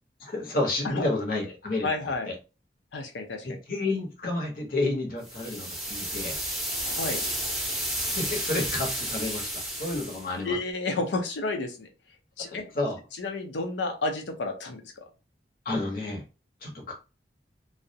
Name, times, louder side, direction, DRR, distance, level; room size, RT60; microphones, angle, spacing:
voice 1, 0.2-1.9 2.3-2.4 3.4-6.4 8.1-10.6 12.4-13.0 15.6-16.2 16.6-16.9, left 2 dB, 55° left, 1 dB, 0.8 m, -30 dB
voice 2, 1.8-2.3 2.9-3.6 6.8-7.2 10.4-11.9 12.4-12.6 13.2-14.9, left 3 dB, 90° left, 4 dB, 0.6 m, -31 dB
sound 1, 5.2-10.3, right 1 dB, ahead, 0.7 m, -32 dB
2.3 x 2.0 x 2.7 m, 0.30 s
head